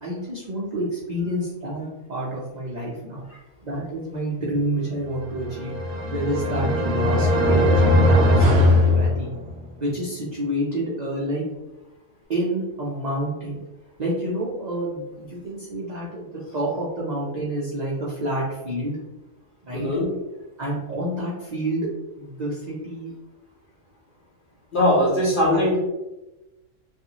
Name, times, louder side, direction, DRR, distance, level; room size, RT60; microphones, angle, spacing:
voice 1, 0.0-3.2 3.6-5.7 6.1-8.2 8.5-9.3 9.8-11.4 12.3-13.6 14.0-19.0 19.7-19.9 20.6-21.9 22.2-23.1 25.5-25.6, right 1 dB, 70° right, -6 dB, 0.4 m, -28 dB
sound 1, 5.3-9.7, left 1 dB, 55° right, 0.7 m, -19 dB
voice 2, 19.7-20.1 24.7-25.8, left 1 dB, 45° left, -6 dB, 0.8 m, -20 dB
2.5 x 2.4 x 2.7 m, 1.0 s
omnidirectional pair, 1.5 m